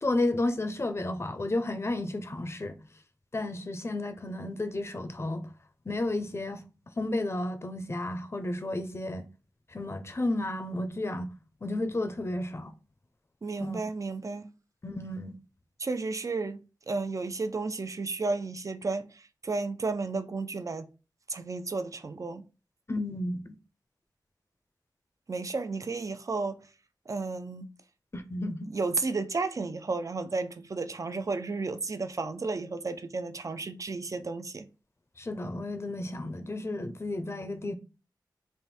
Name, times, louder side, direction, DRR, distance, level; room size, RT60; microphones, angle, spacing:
voice 1, 0.0-2.8 3.3-5.5 5.9-6.6 7.0-9.3 9.7-11.3 11.6-12.7 13.6-13.8 14.8-15.4 22.9-23.6 28.1-28.7 35.2-37.7, left 2 dB, 35° left, 0.6 m, -32 dB
voice 2, 13.4-14.5 15.8-16.6 16.9-20.9 21.3-22.4 25.3-26.6 27.1-27.7 28.7-34.7, right 3 dB, 45° right, 0.5 m, -33 dB
3.5 x 2.6 x 4.2 m
wide cardioid pair, 75°, 8 cm